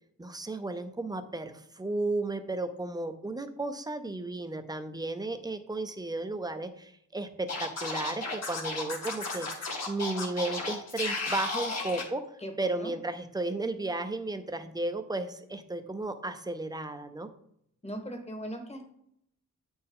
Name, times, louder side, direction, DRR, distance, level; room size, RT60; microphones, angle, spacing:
voice 1, 0.2-12.2 12.6-17.3, right 2 dB, 15° right, 8 dB, 0.5 m, -34 dB
Scratching (performance technique), 7.5-12.0, left 3 dB, 55° left, 1.5 m, -34 dB
voice 2, 12.4-12.9 17.8-18.9, equal, 20° left, 5 dB, 1.1 m, -39 dB
8.8 x 4.4 x 3.7 m, 0.71 s
wide cardioid pair, 125°, 31 cm